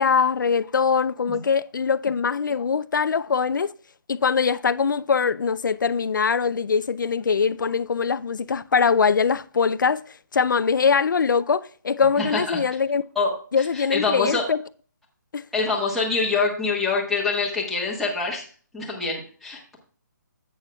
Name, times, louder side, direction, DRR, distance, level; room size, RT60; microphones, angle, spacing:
voice 1, 0.0-3.7 4.1-13.0 13.5-14.6 15.3-15.4, left 5 dB, 85° left, 0.4 m, -22 dB
voice 2, 12.2-12.6 13.1-13.3 13.6-14.4 15.5-18.4 18.7-19.8, left 4 dB, ahead, 1.3 m, -25 dB
11.0 x 8.3 x 2.3 m
hypercardioid pair, 170°, 10 cm